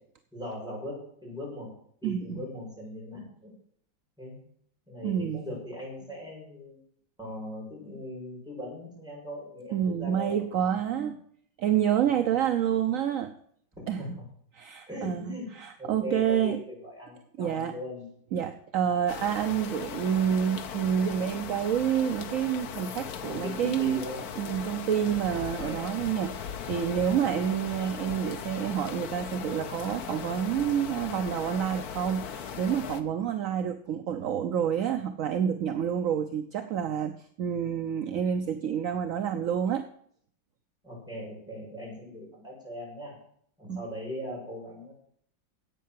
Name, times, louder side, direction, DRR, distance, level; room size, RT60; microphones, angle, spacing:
voice 1, 0.3-1.7 2.0-3.5 4.2-4.4 4.9-6.8 7.2-11.1 14.0-14.1 14.9-15.5 15.8-18.0 23.3-24.3 25.2-25.8 40.8-43.2 43.6-44.9, left 1 dB, ahead, -4 dB, 6.8 m, -39 dB
voice 2, 2.0-2.4 5.0-5.5 9.7-11.1 11.6-13.3 13.9-14.1 14.5-16.6 17.4-17.7 18.3-24.0 24.4-39.9 43.7-43.8, right 9 dB, 60° right, 7 dB, 0.9 m, -28 dB
sound 1, 19.1-33.0, left 7 dB, 60° left, 1.2 m, -38 dB
11.0 x 8.4 x 7.5 m, 0.63 s
omnidirectional pair, 2.0 m